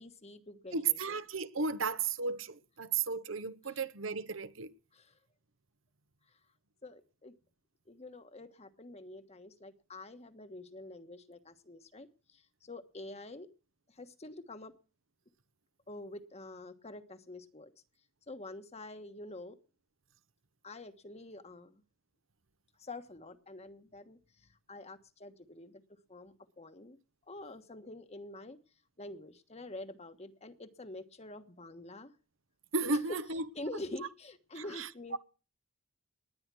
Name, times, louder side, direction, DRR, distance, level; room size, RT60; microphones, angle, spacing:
voice 1, 0.0-1.2 4.9-5.1 6.8-7.3 7.9-13.5 14.0-14.7 15.9-17.7 18.3-19.5 20.6-21.8 22.8-24.2 24.7-25.8 26.1-27.0 27.3-28.6 29.0-32.1 33.1-33.2 33.5-35.2, left 2 dB, 30° left, 1.3 m, -47 dB
voice 2, 0.7-4.7 32.7-33.4 34.6-35.2, right 4 dB, 65° right, 1.0 m, -34 dB
19.5 x 9.8 x 6.2 m
head